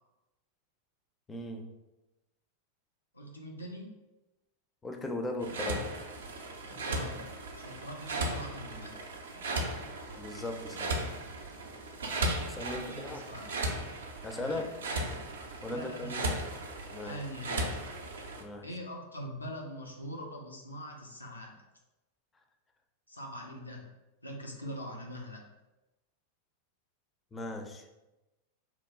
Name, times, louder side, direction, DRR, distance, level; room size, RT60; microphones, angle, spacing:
voice 1, 1.3-1.7 4.8-6.0 10.2-11.0 12.5-13.2 14.2-14.6 15.6-16.4 16.9-17.2 18.4-18.7 27.3-27.8, left 2 dB, 15° left, 4 dB, 0.4 m, -38 dB
voice 2, 3.1-3.9 6.6-7.2 7.5-8.9 12.6-13.4 14.4-14.6 15.7-16.4 17.0-17.8 18.6-21.6 23.1-23.8 24.2-25.5, equal, 80° left, 0 dB, 0.5 m, -43 dB
sound 1, 5.4-18.4, right 1 dB, 65° right, 0.4 m, -36 dB
2.9 x 2.2 x 3.6 m, 1.0 s
figure-of-eight pair, 90°, 0 cm